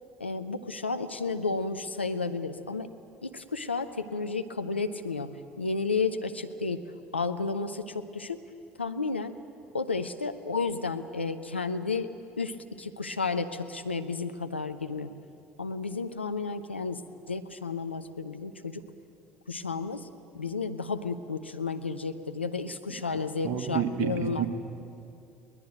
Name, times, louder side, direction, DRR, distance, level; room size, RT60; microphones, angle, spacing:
voice 1, 0.2-2.9 3.2-8.4 8.8-9.3 9.7-12.1 12.4-15.1 15.6-17.0 17.3-18.8 19.5-20.1 20.3-24.5, left 4 dB, 85° left, 8 dB, 0.9 m, -32 dB
voice 2, 23.4-24.5, right 9 dB, 50° right, 6 dB, 2.3 m, -29 dB
23.0 x 19.5 x 9.3 m, 2.6 s
figure-of-eight pair, 60°, 6 cm